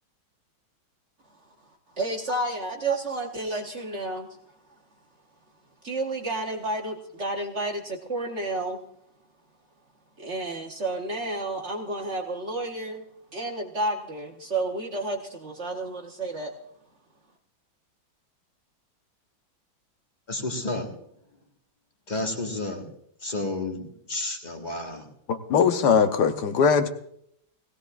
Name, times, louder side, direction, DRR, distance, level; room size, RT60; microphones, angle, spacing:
voice 1, 1.9-4.3 5.8-8.8 10.2-13.0 13.3-16.5, right 2 dB, 45° right, 1.0 m, -31 dB
voice 2, 20.3-20.9 22.1-22.9 23.2-25.1, left 2 dB, 25° left, 1.5 m, -31 dB
voice 3, 25.3-26.9, left 6 dB, 65° left, 1.3 m, -21 dB
19.5 x 16.5 x 2.5 m
omnidirectional pair, 2.2 m